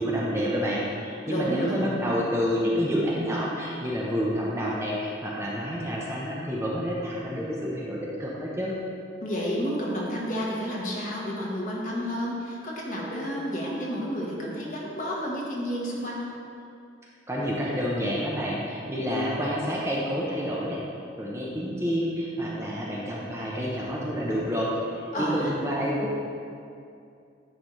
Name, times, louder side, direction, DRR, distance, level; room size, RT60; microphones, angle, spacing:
voice 1, 0.0-8.7 17.3-20.8 21.2-26.2, equal, 15° right, -4 dB, 0.7 m, -28 dB
voice 2, 1.3-2.0 9.2-16.3 25.1-25.6, equal, 45° left, -4 dB, 1.2 m, -30 dB
9.7 x 4.1 x 3.1 m, 2.4 s
head